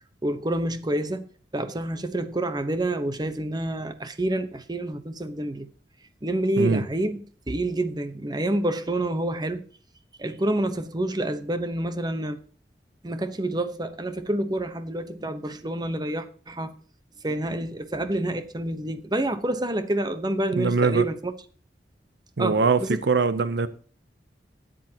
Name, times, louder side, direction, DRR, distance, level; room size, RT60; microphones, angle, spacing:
voice 1, 0.2-1.3 1.5-5.7 6.2-7.2 7.5-9.6 10.2-12.4 13.0-16.7 17.2-21.3 22.4-23.0, right 1 dB, 25° right, 1.0 m, -28 dB
voice 2, 20.5-21.1 22.4-23.7, right 4 dB, 70° right, 0.7 m, -22 dB
13.0 x 10.0 x 2.9 m
head